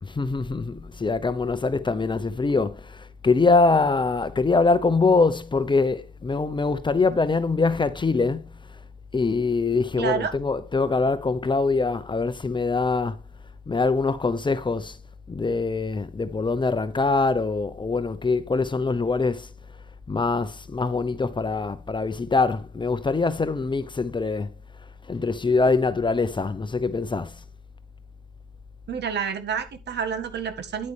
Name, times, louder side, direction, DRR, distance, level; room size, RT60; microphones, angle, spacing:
voice 1, 0.0-8.8 9.1-13.2 13.7-15.0 15.3-19.5 20.1-24.5 25.0-27.4, left 4 dB, 25° left, 0.8 m, -23 dB
voice 2, 10.0-10.3 28.9-30.9, right 7 dB, 60° right, 1.9 m, -29 dB
9.8 x 9.3 x 3.4 m
cardioid pair, 90°, 20 cm